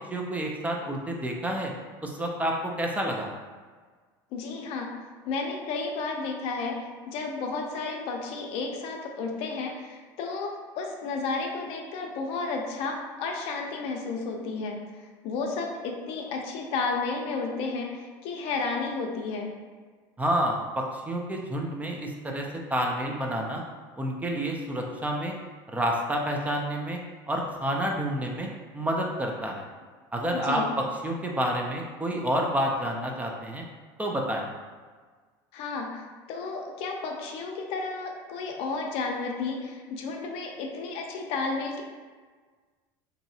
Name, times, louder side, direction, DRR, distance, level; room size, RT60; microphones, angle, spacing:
voice 1, 0.1-1.7 2.0-3.3 20.2-22.5 22.7-23.6 24.0-25.4 25.7-27.0 27.3-28.5 28.7-29.6 30.1-33.6 34.0-34.5, right 1 dB, 15° right, 0 dB, 0.4 m, -29 dB
voice 2, 4.3-4.9 5.3-14.8 15.2-19.5 30.3-30.7 35.5-41.8, left 4 dB, 65° left, 2 dB, 0.5 m, -32 dB
3.0 x 2.7 x 2.7 m, 1.5 s
supercardioid pair, 110°, 11 cm